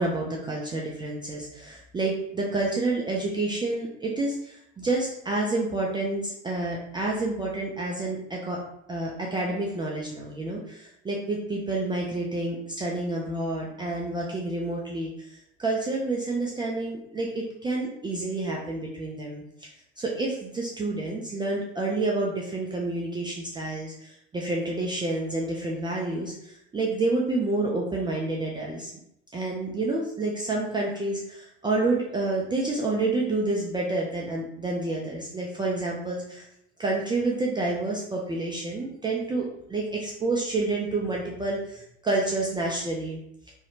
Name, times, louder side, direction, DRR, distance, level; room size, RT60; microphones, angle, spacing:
voice 1, 0.0-8.6 8.9-19.7 20.0-28.9 29.3-36.5 36.8-43.2, right 2 dB, 15° right, -3 dB, 0.4 m, -29 dB
2.6 x 2.0 x 2.6 m, 0.75 s
hypercardioid pair, 70°, 31 cm